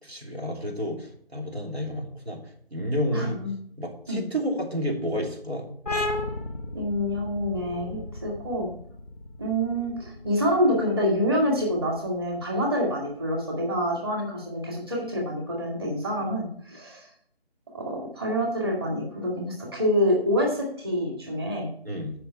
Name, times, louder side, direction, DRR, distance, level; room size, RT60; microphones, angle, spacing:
voice 1, 0.0-2.4 2.7-3.4 3.8-5.7 16.2-16.3 21.8-22.1, equal, 85° right, 1 dB, 3.0 m, -30 dB
voice 2, 3.1-3.5 4.1-4.2 6.7-8.7 9.4-17.1 17.7-21.7, equal, 25° right, -1 dB, 2.2 m, -27 dB
sound 1, 5.9-13.2, left 2 dB, 15° left, 0.8 m, -35 dB
8.3 x 5.7 x 5.6 m, 0.66 s
figure-of-eight pair, 165°, 31 cm